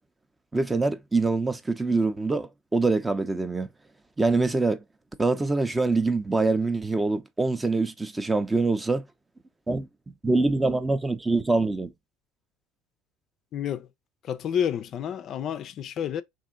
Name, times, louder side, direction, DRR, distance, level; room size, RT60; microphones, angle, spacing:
voice 1, 0.5-3.7 4.2-4.8 5.2-9.0 9.7-9.9 10.2-11.9, right 3 dB, 15° right, 0.5 m, -24 dB
voice 2, 13.5-13.9 14.3-16.2, left 9 dB, 45° left, 0.4 m, -29 dB
3.6 x 2.5 x 3.6 m
supercardioid pair, 100°, 0 cm